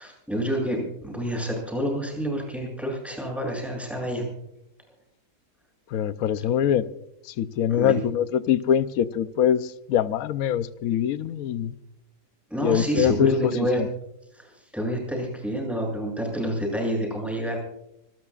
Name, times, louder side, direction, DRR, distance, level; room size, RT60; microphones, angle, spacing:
voice 1, 0.0-4.2 7.7-8.0 12.5-13.8 14.3-17.6, equal, ahead, 7.8 m, -28 dB
voice 2, 5.9-6.9 7.2-11.7 12.6-13.9, left 9 dB, 65° left, 1.0 m, -24 dB
26.0 x 20.0 x 2.5 m
omnidirectional pair, 1.8 m